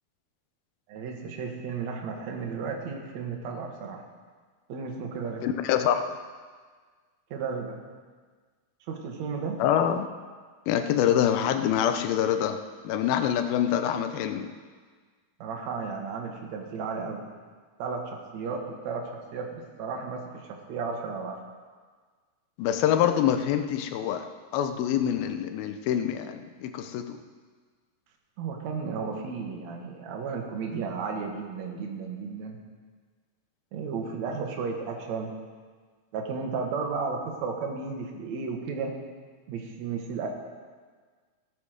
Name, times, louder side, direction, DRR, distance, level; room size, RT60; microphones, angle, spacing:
voice 1, 0.9-4.0 4.7-5.4 7.3-7.8 8.9-9.6 15.4-17.2 17.8-21.4 28.4-32.6 33.7-35.3 36.1-38.9 39.5-40.3, right 5 dB, 55° right, 1 dB, 2.5 m, -34 dB
voice 2, 5.4-6.2 9.6-10.1 10.7-12.6 12.8-14.5 22.6-24.3 24.5-27.2, left 9 dB, 85° left, 8 dB, 2.6 m, -25 dB
17.0 x 7.6 x 6.6 m, 1.5 s
omnidirectional pair, 4.2 m